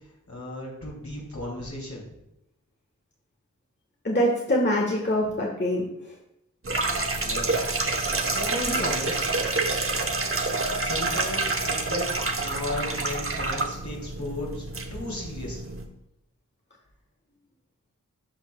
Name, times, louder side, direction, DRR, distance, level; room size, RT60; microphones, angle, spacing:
voice 1, 0.3-2.0 7.2-7.5 8.3-9.4 10.8-14.6 14.9-15.7, left 1 dB, 65° left, -3 dB, 2.9 m, -35 dB
voice 2, 4.0-5.8, equal, 35° left, -2 dB, 1.3 m, -24 dB
sound 1, 6.6-15.9, right 3 dB, 45° right, 0.9 m, -28 dB
12.0 x 5.3 x 2.3 m, 0.85 s
wide cardioid pair, 60°, 31 cm